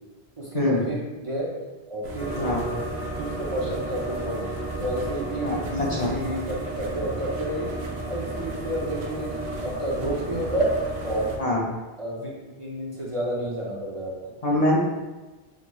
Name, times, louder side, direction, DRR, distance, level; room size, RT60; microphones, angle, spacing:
voice 1, 0.4-1.5 1.9-2.6 3.1-7.7 8.1-10.7 11.0-11.4 12.0-12.3 12.6-14.3, right 1 dB, 35° right, -5 dB, 0.7 m, -30 dB
sound 1, 2.0-11.4, right 3 dB, 85° right, 0.9 m, -35 dB
sound 2, 2.2-11.3, equal, 85° left, 1.1 m, -36 dB
voice 2, 5.4-6.1 11.4-11.6 14.4-14.8, left 1 dB, 45° left, -3 dB, 0.6 m, -24 dB
5.9 x 2.9 x 2.3 m, 1.2 s
omnidirectional pair, 1.0 m